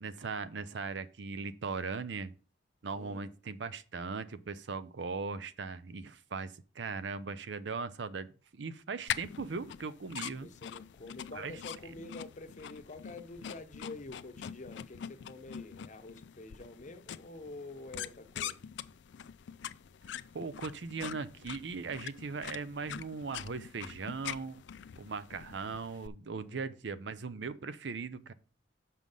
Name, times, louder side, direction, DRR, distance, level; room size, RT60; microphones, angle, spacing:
voice 1, 0.0-2.3 2.8-10.5 11.4-11.5 20.3-24.6 25.0-28.3, right 4 dB, 65° right, 0.6 m, -39 dB
voice 2, 2.9-3.3 10.4-18.6 26.3-26.8, left 2 dB, 40° left, 0.8 m, -48 dB
sound 1, 9.1-26.1, left 9 dB, 65° left, 0.4 m, -44 dB
6.3 x 5.6 x 5.3 m
head